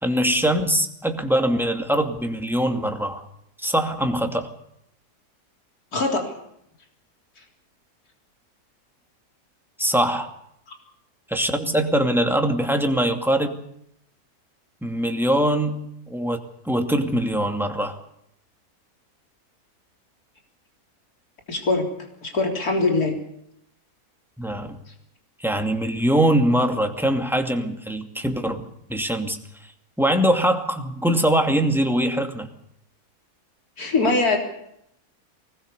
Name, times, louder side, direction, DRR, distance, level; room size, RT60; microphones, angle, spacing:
voice 1, 0.0-3.2 3.6-4.5 9.8-10.3 11.3-13.6 14.8-16.4 16.6-18.0 24.4-24.8 25.4-29.4 30.0-32.5, right 1 dB, ahead, 4 dB, 2.4 m, -22 dB
voice 2, 5.9-6.3 21.5-21.8 22.2-23.2 33.8-34.4, left 3 dB, 70° left, 2 dB, 4.2 m, -22 dB
24.0 x 20.0 x 6.8 m, 0.74 s
omnidirectional pair, 1.6 m